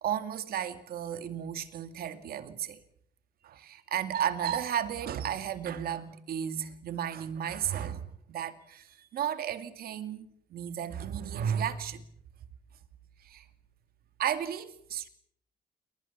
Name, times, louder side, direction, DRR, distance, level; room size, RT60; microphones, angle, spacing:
voice 1, 0.0-2.8 3.4-12.0 13.2-13.5 14.2-15.1, right 9 dB, 75° right, 2.4 m, -34 dB
29.5 x 20.5 x 7.3 m
wide cardioid pair, 175°, 16 cm